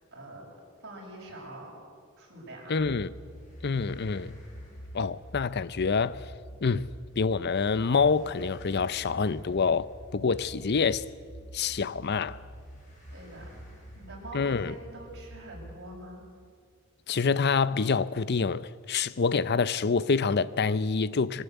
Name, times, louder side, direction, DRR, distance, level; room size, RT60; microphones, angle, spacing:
voice 1, 0.1-0.6 0.8-1.8 2.2-2.8 13.1-13.5 13.9-16.2, right 1 dB, 55° right, 7.2 m, -44 dB
voice 2, 2.7-3.1 3.6-4.4 4.9-6.3 6.6-6.9 7.2-11.0 11.5-12.4 14.3-14.7 17.1-21.4, left 5 dB, 55° left, 0.6 m, -27 dB
sound 1, 2.8-15.9, equal, 35° left, 7.2 m, -47 dB
21.5 x 19.0 x 8.1 m
head